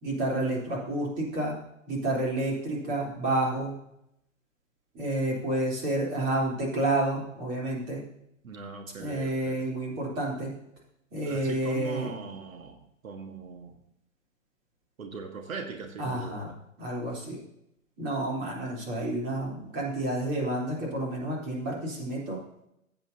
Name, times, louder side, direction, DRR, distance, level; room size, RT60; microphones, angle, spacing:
voice 1, 0.0-1.6 1.9-3.7 4.9-8.0 9.0-10.5 11.1-12.1 16.0-16.5 16.8-17.4 18.0-22.4, right 1 dB, 25° right, -4 dB, 3.5 m, -30 dB
voice 2, 8.4-9.7 11.2-13.8 15.0-16.5, right 5 dB, 90° right, 4 dB, 1.6 m, -40 dB
15.0 x 8.7 x 2.8 m, 0.79 s
hypercardioid pair, 145°, 40 cm